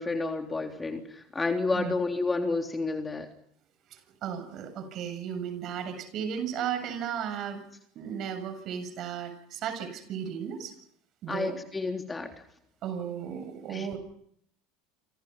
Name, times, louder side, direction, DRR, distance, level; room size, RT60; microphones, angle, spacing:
voice 1, 0.0-3.3 11.3-12.3 13.7-14.0, left 3 dB, 15° left, 4 dB, 3.5 m, -30 dB
voice 2, 3.9-7.6 7.9-10.7 11.2-11.5 12.8-14.0, right 8 dB, 45° right, 8 dB, 7.6 m, -35 dB
28.0 x 27.5 x 5.7 m, 0.69 s
hypercardioid pair, 75°, 0 cm